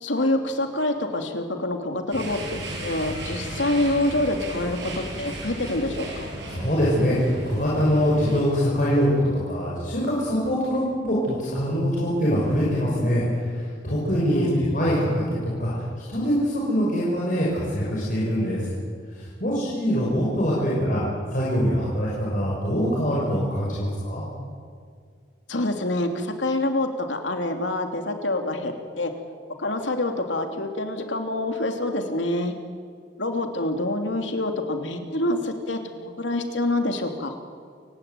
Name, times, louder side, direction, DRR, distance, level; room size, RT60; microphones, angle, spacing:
voice 1, 0.0-6.3 14.3-14.9 25.5-29.1 29.6-32.5 33.2-37.3, left 1 dB, 90° left, 4 dB, 3.0 m, -26 dB
sound 1, 2.1-8.4, right 1 dB, 70° right, 7.9 m, -35 dB
voice 2, 6.5-9.2 9.5-15.8 16.1-18.6 19.1-21.0 21.3-24.2, equal, 45° left, -6 dB, 6.0 m, -23 dB
29.0 x 16.5 x 9.4 m, 2.1 s
head